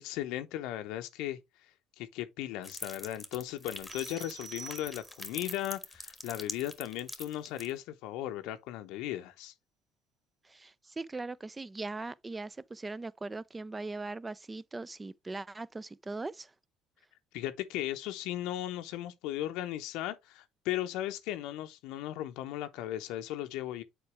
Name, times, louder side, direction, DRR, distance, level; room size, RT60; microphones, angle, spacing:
voice 1, 0.0-1.4 2.0-9.5 17.3-23.8, left 13 dB, 70° left, 0.7 m, -37 dB
sound 1, 2.6-7.7, left 2 dB, 5° left, 1.5 m, -43 dB
sound 2, 3.9-5.4, right 6 dB, 55° right, 3.1 m, -48 dB
voice 2, 10.4-16.5, right 3 dB, 20° right, 0.5 m, -40 dB
6.8 x 4.6 x 3.3 m
hypercardioid pair, 60°, 0 cm